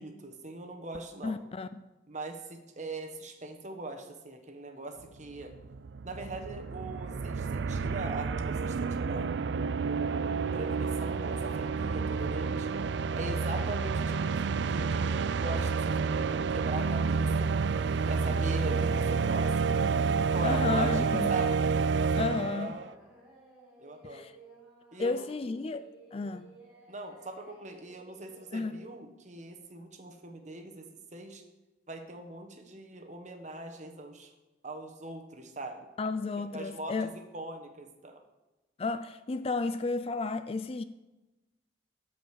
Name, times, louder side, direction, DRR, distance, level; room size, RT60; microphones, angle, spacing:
voice 1, 0.0-1.4 2.1-5.5 6.0-9.3 9.8-12.7 13.2-14.4 14.7-17.5 18.1-19.9 20.3-22.9 23.8-24.3 24.9-25.3 26.9-31.4 31.9-34.3 34.6-35.8 36.5-38.2, right 2 dB, 40° right, 1.3 m, -41 dB
voice 2, 1.2-1.8 20.4-21.3 22.2-22.7 24.1-24.3 25.0-26.5 28.5-28.8 36.0-37.1 38.8-40.8, left 3 dB, 30° left, 0.3 m, -32 dB
sound 1, 5.1-5.2 5.4-22.9, right 5 dB, 60° right, 0.4 m, -29 dB
Singing, 19.4-28.8, right 1 dB, 5° right, 2.9 m, -56 dB
13.5 x 5.2 x 8.1 m
head